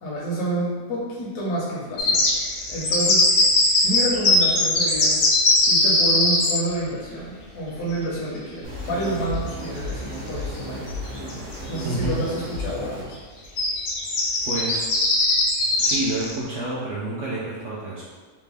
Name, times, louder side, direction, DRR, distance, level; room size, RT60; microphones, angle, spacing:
voice 1, 0.0-2.2 2.7-3.3 3.8-5.2 5.7-10.8 11.7-13.2, right 1 dB, 75° left, -6 dB, 1.1 m, -28 dB
sound 1, 2.0-6.6 9.0-9.1 9.5-9.6 10.9-11.0 11.3-11.8 12.3-12.5 13.6-16.3, left 2 dB, 60° left, 0.7 m, -20 dB
sound 2, 8.6-13.0, left 1 dB, 45° right, 1.1 m, -33 dB
voice 2, 11.8-12.2 14.4-14.9 15.7-18.0, right 2 dB, 70° right, -7 dB, 0.7 m, -29 dB
3.4 x 2.1 x 3.3 m, 1.5 s
omnidirectional pair, 1.7 m